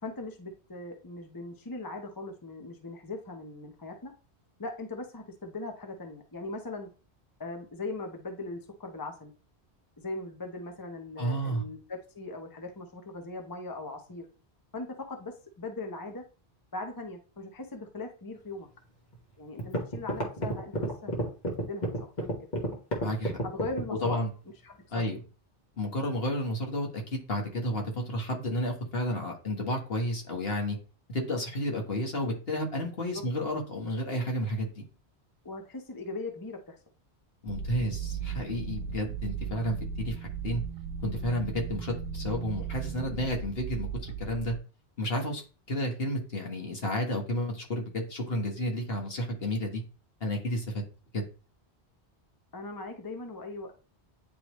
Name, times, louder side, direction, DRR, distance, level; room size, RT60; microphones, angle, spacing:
voice 1, 0.0-4.1 4.6-6.9 7.4-9.3 10.0-14.3 14.7-16.2 16.7-18.7 19.4-21.3 21.6-22.4 23.4-24.2 24.6-25.1 33.0-33.2 35.4-36.8 52.5-53.8, left 2 dB, 20° left, 4 dB, 0.8 m, -39 dB
voice 2, 11.2-11.6 23.0-23.3 24.0-24.3 24.9-25.2 25.8-30.8 31.1-34.9 37.4-40.6 41.0-44.5 45.0-45.4 45.7-49.8 50.2-50.6 51.1-51.2, equal, 60° left, 1 dB, 1.7 m, -31 dB
sound 1, 19.1-19.2 19.6-24.2, right 1 dB, 40° left, 1.6 m, -30 dB
sound 2, 37.5-44.6, right 6 dB, 65° right, 0.7 m, -36 dB
9.5 x 3.3 x 3.1 m, 0.36 s
omnidirectional pair, 1.1 m